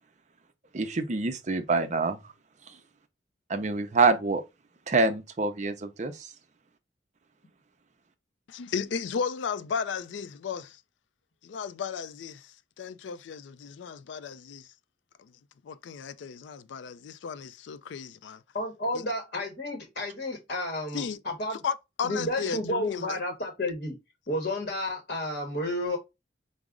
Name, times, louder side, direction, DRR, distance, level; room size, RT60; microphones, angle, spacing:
voice 1, 0.7-2.2 3.5-4.4 4.9-6.3, right 3 dB, 40° right, 0.5 m, -26 dB
voice 2, 8.5-10.8 11.4-14.7 15.2-15.3 15.6-18.4 18.9-19.0 20.9-21.2 21.5-23.2, left 6 dB, 75° left, 0.4 m, -35 dB
voice 3, 18.5-21.6 22.0-23.9 24.3-26.0, left 1 dB, 50° left, 0.9 m, -31 dB
4.8 x 2.0 x 3.5 m
head